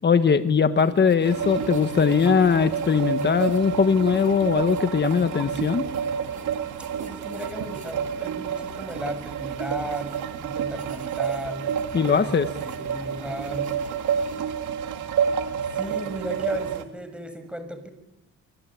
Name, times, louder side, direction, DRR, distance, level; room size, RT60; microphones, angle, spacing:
voice 1, 0.0-5.9 11.9-12.5, left 6 dB, 35° left, 9 dB, 1.6 m, -20 dB
sound 1, 0.8-14.5, right 3 dB, 25° right, 4.5 m, -47 dB
sound 2, 1.2-16.8, right 7 dB, 80° right, 2.2 m, -29 dB
voice 2, 7.0-11.7 12.1-12.3 12.6-13.7 15.7-17.9, right 1 dB, 5° right, 7 dB, 6.7 m, -35 dB
26.0 x 24.5 x 8.7 m, 0.96 s
cardioid pair, 90°, 30 cm